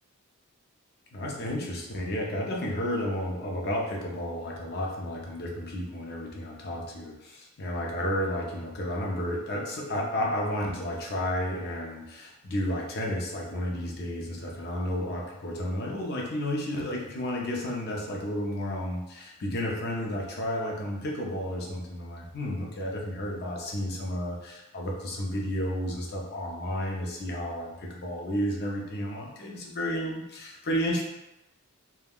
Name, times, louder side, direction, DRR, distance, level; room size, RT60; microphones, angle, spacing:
voice 1, 1.1-31.0, left 1 dB, 45° left, -1 dB, 0.5 m, -32 dB
3.5 x 2.2 x 2.3 m, 0.96 s
head